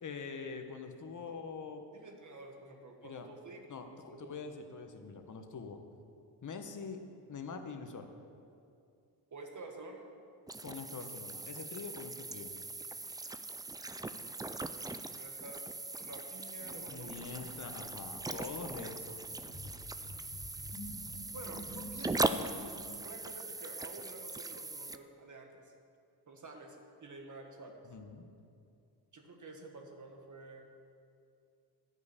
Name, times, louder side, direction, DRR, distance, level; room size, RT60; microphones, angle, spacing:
voice 1, 0.0-1.8 3.0-3.3 3.7-5.8 6.4-7.0 7.3-8.1 10.6-12.5 16.9-19.2 27.8-28.2, left 5 dB, 45° left, 6 dB, 1.2 m, -44 dB
voice 2, 1.9-4.3 9.3-10.1 15.1-15.6 16.0-17.5 21.3-22.5 23.0-25.7 26.3-27.8 29.1-30.7, right 2 dB, 45° right, 3 dB, 1.7 m, -50 dB
sound 1, 10.5-25.0, right 2 dB, 10° right, 0.3 m, -40 dB
sound 2, 16.6-23.0, left 2 dB, 85° left, 2.5 m, -50 dB
10.5 x 5.4 x 8.4 m, 2.4 s
cardioid pair, 70°, 43 cm